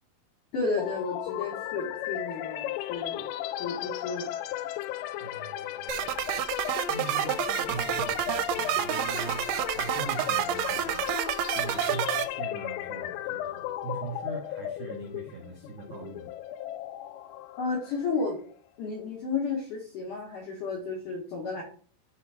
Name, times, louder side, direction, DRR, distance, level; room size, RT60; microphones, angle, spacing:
voice 1, 0.5-3.3 3.6-4.3 17.6-18.4 18.8-21.6, left 4 dB, 70° left, -3 dB, 1.9 m, -32 dB
sound 1, 0.8-18.5, left 13 dB, 90° left, 3.2 m, -35 dB
voice 2, 5.2-6.3 6.9-11.0 11.5-16.3, right 5 dB, 65° right, -3 dB, 2.0 m, -41 dB
sound 2, 5.9-12.3, right 13 dB, 85° right, 3.1 m, -29 dB
7.1 x 3.8 x 4.7 m, 0.43 s
omnidirectional pair, 5.8 m